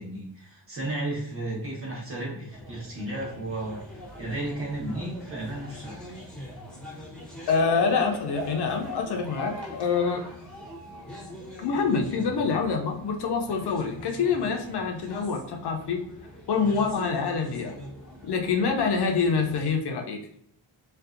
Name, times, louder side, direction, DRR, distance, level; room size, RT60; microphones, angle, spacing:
voice 1, 0.0-6.0, right 1 dB, 30° right, -4 dB, 0.9 m, -34 dB
sound 1, 2.5-19.7, equal, ahead, 0.7 m, -42 dB
voice 2, 7.5-10.2 11.6-16.0 16.5-17.8 18.2-20.2, left 5 dB, 65° left, 3 dB, 0.5 m, -26 dB
2.6 x 2.2 x 2.4 m, 0.69 s
wide cardioid pair, 140°, 45 cm